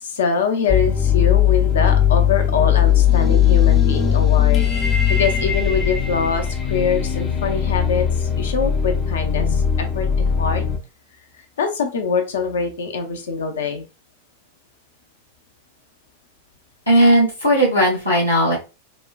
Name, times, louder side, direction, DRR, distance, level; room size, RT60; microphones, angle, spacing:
voice 1, 0.0-10.6 11.6-13.9, left 5 dB, 65° left, 5 dB, 0.7 m, -24 dB
sound 1, 0.7-10.8, left 9 dB, 25° left, 0.5 m, -18 dB
voice 2, 16.9-18.6, right 1 dB, 85° left, -5 dB, 1.6 m, -16 dB
4.1 x 2.3 x 2.4 m, 0.29 s
figure-of-eight pair, 90°, 0 cm